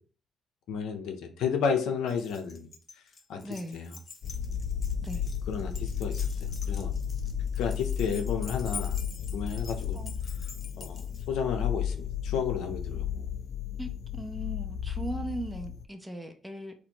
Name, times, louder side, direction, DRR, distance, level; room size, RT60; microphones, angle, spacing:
voice 1, 0.7-2.7 3.3-3.4 3.7-3.9 5.5-6.3 6.7-6.9 7.6-9.0 9.3-10.0 10.8-13.2, left 6 dB, 85° left, 6 dB, 0.7 m, -32 dB
Keys jangling, 2.1-11.3, left 4 dB, 35° left, 0.8 m, -47 dB
voice 2, 3.4-3.8 5.0-5.2 9.9-10.1 13.8-16.7, right 1 dB, 5° right, 4 dB, 0.7 m, -38 dB
sound 1, 4.2-15.8, left 8 dB, 60° left, 0.3 m, -33 dB
4.2 x 2.6 x 4.4 m, 0.41 s
cardioid pair, 90°, 0 cm